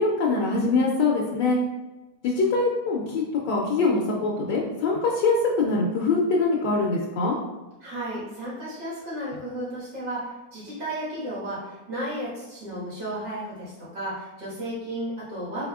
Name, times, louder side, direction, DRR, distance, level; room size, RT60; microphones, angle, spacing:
voice 1, 0.0-1.6 2.2-7.4, left 3 dB, 80° left, -2 dB, 1.3 m, -23 dB
voice 2, 7.8-15.7, right 1 dB, 90° right, -9 dB, 2.2 m, -33 dB
4.2 x 4.1 x 2.3 m, 1.1 s
omnidirectional pair, 1.9 m